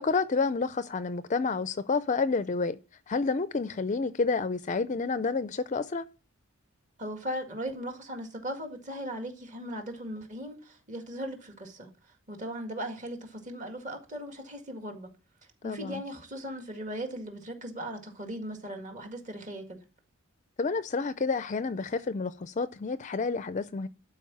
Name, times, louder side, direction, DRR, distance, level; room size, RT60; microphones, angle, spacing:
voice 1, 0.0-2.8 3.1-6.0 15.6-16.0 20.6-23.9, left 4 dB, 35° left, 0.4 m, -29 dB
voice 2, 7.0-11.9 12.3-15.1 15.6-19.8, right 1 dB, 35° right, 1.9 m, -38 dB
12.0 x 4.7 x 7.1 m
head